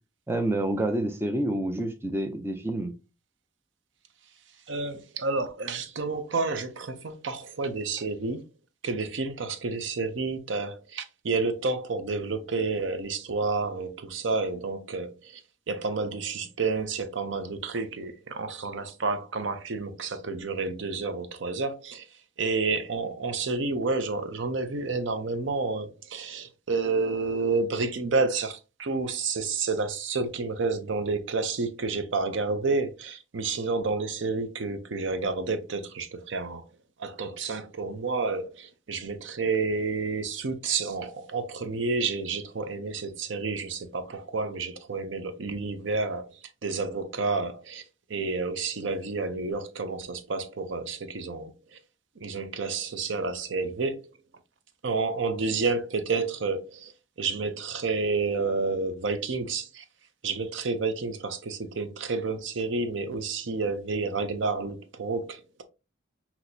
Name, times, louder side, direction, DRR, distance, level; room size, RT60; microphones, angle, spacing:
voice 1, 0.3-2.9, right 1 dB, 10° right, 0.5 m, -28 dB
voice 2, 4.7-8.4 8.8-15.4 15.7-22.1 22.4-36.7 37.0-47.8 48.1-51.8 52.2-54.1 54.8-56.9 57.2-59.8 60.2-65.6, right 4 dB, 70° right, 0.6 m, -30 dB
5.9 x 2.9 x 2.7 m
head